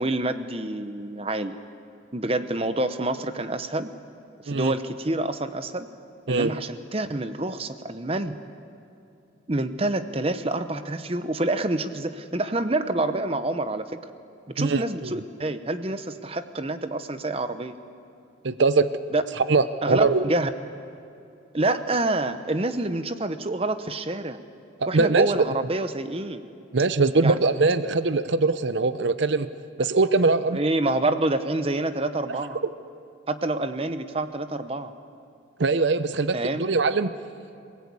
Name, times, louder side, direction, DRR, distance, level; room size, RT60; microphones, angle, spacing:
voice 1, 0.0-1.6 2.1-3.9 4.4-5.9 6.3-8.4 9.5-14.0 14.5-17.8 19.1-19.2 19.8-20.5 21.5-24.4 24.9-26.4 27.2-27.3 30.5-32.6 33.3-34.9 36.3-36.7, right 2 dB, 30° right, 10 dB, 0.9 m, -27 dB
voice 2, 14.6-15.1 18.4-18.9 19.5-20.2 24.8-25.3 26.7-29.5 29.8-30.6 32.3-32.7 35.6-37.1, right 3 dB, 65° right, 13 dB, 0.7 m, -22 dB
27.0 x 18.5 x 8.4 m, 2.7 s
head